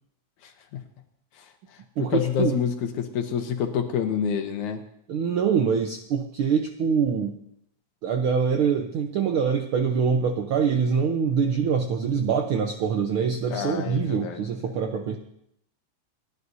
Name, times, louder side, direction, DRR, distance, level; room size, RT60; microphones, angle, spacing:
voice 1, 0.4-0.8 1.4-4.8 13.5-14.4, left 8 dB, 80° left, 5 dB, 2.4 m, -28 dB
voice 2, 2.0-2.6 5.1-7.4 8.0-15.2, right 6 dB, 80° right, 5 dB, 1.2 m, -24 dB
29.0 x 11.0 x 2.7 m, 0.74 s
omnidirectional pair, 3.4 m